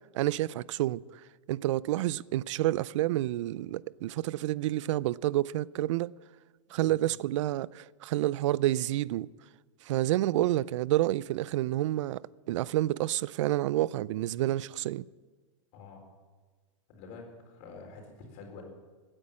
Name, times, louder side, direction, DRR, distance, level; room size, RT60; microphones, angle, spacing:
voice 1, 0.1-1.2 1.5-6.1 6.7-9.3 9.8-15.0, right 15 dB, 65° right, 0.4 m, -29 dB
voice 2, 15.7-16.1 16.9-18.6, left 4 dB, 50° left, 4.4 m, -47 dB
16.0 x 9.9 x 7.4 m
supercardioid pair, 140°, 17 cm